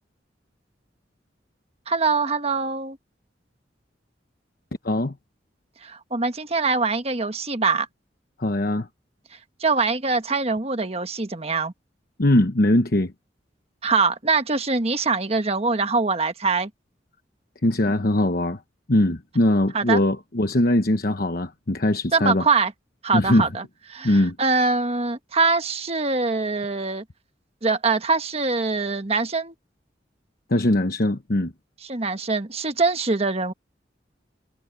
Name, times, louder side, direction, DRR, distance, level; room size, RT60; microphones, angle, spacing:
voice 1, 1.9-3.0 5.8-7.9 9.6-11.7 13.8-16.7 19.7-20.0 22.1-22.7 23.0-23.6 23.9-27.0 27.6-29.5 31.9-33.5, right 4 dB, 35° right, 1.3 m, -23 dB
voice 2, 4.8-5.2 8.4-8.9 12.2-13.1 17.6-18.6 18.9-22.5 23.1-23.5 24.0-24.4 30.5-31.5, left 1 dB, 55° left, 1.1 m, -21 dB
head